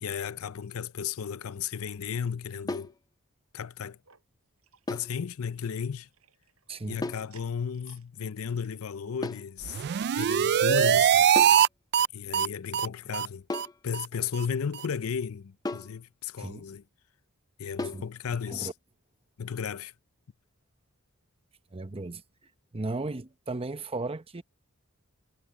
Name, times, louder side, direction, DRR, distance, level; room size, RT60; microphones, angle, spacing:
voice 1, 0.0-2.9 3.5-4.0 4.9-6.1 6.9-9.8 10.2-11.3 12.1-13.5 13.8-16.8 17.6-18.7 19.4-19.9, left 7 dB, 70° left, 0.5 m, -34 dB
sound 1, 2.7-3.0 4.9-5.2 7.0-7.3 9.2-9.5 11.4-11.7 13.5-13.8 15.6-16.0 17.8-18.1, left 2 dB, 20° left, 0.6 m, -35 dB
sound 2, 3.8-6.8 7.2-8.1 8.4-10.8 11.2-11.3 11.6-11.7 12.3-12.4, right 8 dB, 85° right, 5.0 m, -63 dB
voice 2, 6.7-7.1 16.4-16.7 17.9-18.1 18.5-18.7 21.7-24.4, right 2 dB, 25° right, 0.8 m, -36 dB
sound 3, 9.6-11.7 11.9-12.1 12.3-12.5 12.7-12.9 13.1-13.3 13.5-13.7 13.9-14.0 14.3-14.4 14.7-14.8, right 9 dB, 50° right, 0.3 m, -22 dB
head